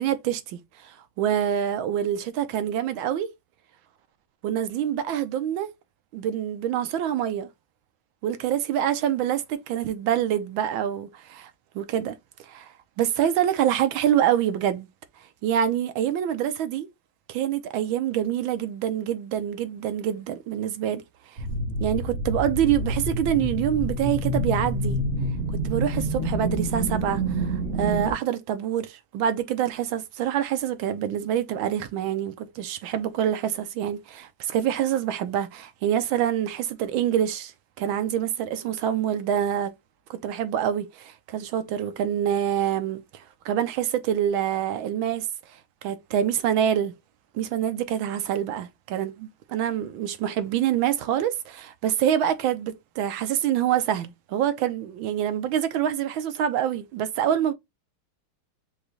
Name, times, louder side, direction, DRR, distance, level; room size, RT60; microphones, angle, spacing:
voice 1, 0.0-3.3 4.4-5.7 6.1-7.5 8.2-11.5 11.7-12.1 12.4-12.7 13.0-14.9 15.4-16.9 17.3-21.0 21.8-25.0 25.6-37.5 37.8-39.7 40.1-45.3 45.8-46.9 47.3-57.5, right 10 dB, 75° right, 1.4 m, -26 dB
sound 1, 21.4-28.1, right 1 dB, 45° right, 1.0 m, -27 dB
4.9 x 2.3 x 3.9 m
omnidirectional pair, 2.4 m